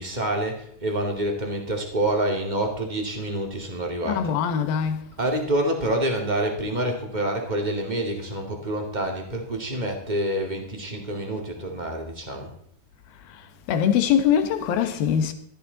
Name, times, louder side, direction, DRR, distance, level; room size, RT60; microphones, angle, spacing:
voice 1, 0.0-4.3 5.2-12.5, right 1 dB, 15° right, 1.5 m, -27 dB
voice 2, 4.0-5.1 13.3-15.3, left 8 dB, 75° left, 3.0 m, -23 dB
17.0 x 13.5 x 4.0 m
omnidirectional pair, 4.4 m